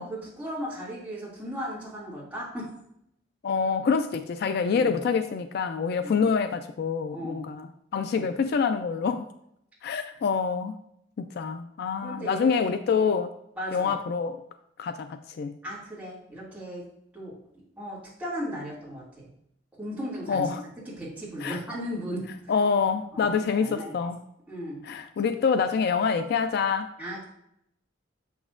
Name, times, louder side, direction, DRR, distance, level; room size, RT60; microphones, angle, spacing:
voice 1, 0.0-2.7 4.7-5.0 6.0-6.3 7.1-7.4 8.1-8.2 12.0-13.1 13.6-13.9 15.6-16.8 17.1-17.3 17.8-19.3 19.8-20.5 21.0-22.5 23.1-23.9 24.5-24.8 27.0-27.3, equal, 10° right, -8 dB, 2.4 m, -36 dB
voice 2, 3.4-9.3 9.8-10.8 11.2-13.3 13.7-14.4 14.8-15.6 20.3-20.6 21.4-21.6 22.5-24.2 24.8-26.9, left 5 dB, 55° left, 9 dB, 0.3 m, -26 dB
6.9 x 6.1 x 2.5 m, 0.75 s
head